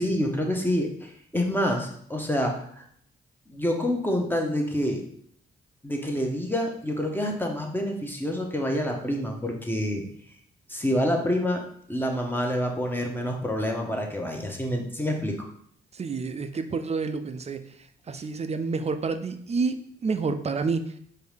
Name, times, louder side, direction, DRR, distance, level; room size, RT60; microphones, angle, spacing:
voice 1, 0.0-2.8 3.5-5.0 5.8-10.0 10.7-11.6 11.9-15.4, equal, 10° left, 1 dB, 0.9 m, -27 dB
voice 2, 15.9-20.9, right 4 dB, 30° right, 9 dB, 0.4 m, -29 dB
4.5 x 2.7 x 3.4 m, 0.66 s
cardioid pair, 65°, 21 cm